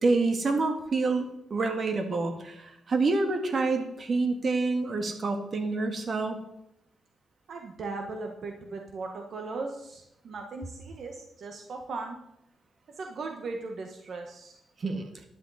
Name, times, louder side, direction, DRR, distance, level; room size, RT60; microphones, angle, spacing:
voice 1, 0.0-6.4 14.8-15.0, right 3 dB, 50° right, 5 dB, 2.1 m, -27 dB
voice 2, 7.5-12.2 13.0-14.6, right 3 dB, 65° right, 2 dB, 1.6 m, -38 dB
13.0 x 11.0 x 4.3 m, 0.82 s
cardioid pair, 100°, 0 cm